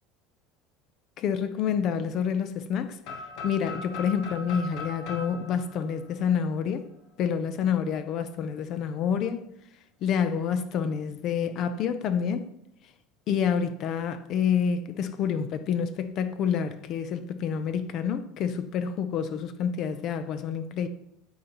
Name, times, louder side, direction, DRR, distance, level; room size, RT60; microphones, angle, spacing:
voice 1, 1.2-3.0 3.4-6.9 7.2-9.4 10.0-12.5 13.3-20.9, left 7 dB, 45° left, 0.5 m, -28 dB
sound 1, 3.0-6.9, left 3 dB, 70° left, 1.0 m, -40 dB
8.5 x 4.1 x 2.9 m
cardioid pair, 145°, 0 cm